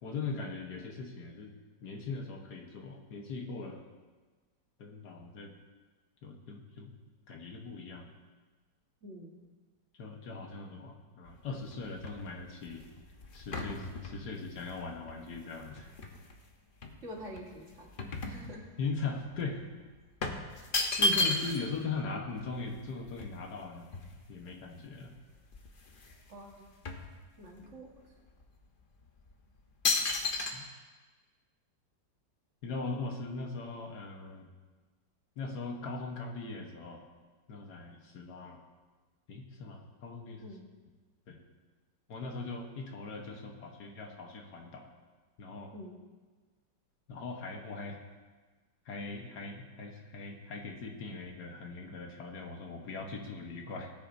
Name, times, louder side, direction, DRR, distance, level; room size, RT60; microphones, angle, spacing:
voice 1, 0.0-1.5 1.8-3.8 4.8-5.5 6.2-7.0 7.3-8.1 10.0-12.8 13.3-15.9 18.8-19.6 21.0-23.9 24.3-25.1 30.5-30.7 32.6-34.5 35.4-37.1 37.5-38.6 39.3-40.5 41.3-41.4 42.1-44.9 45.4-45.7 47.1-48.0 48.8-53.9, left 4 dB, 70° left, 2 dB, 1.7 m, -40 dB
voice 2, 9.0-9.4 17.0-17.9 18.3-18.6 26.3-26.7 27.4-27.9 40.4-40.7 45.7-46.0, equal, 45° right, -1 dB, 1.8 m, -46 dB
sound 1, 11.3-16.4 16.8-19.0 19.3-19.5 20.2-21.8 22.1-22.2 22.4-24.5 25.1-25.2 25.4-26.2 26.5-27.7 28.3-28.4 29.1-29.3 29.8-30.5, left 2 dB, 40° left, 0.8 m, -34 dB
18.0 x 9.8 x 2.6 m, 1.3 s
omnidirectional pair, 1.9 m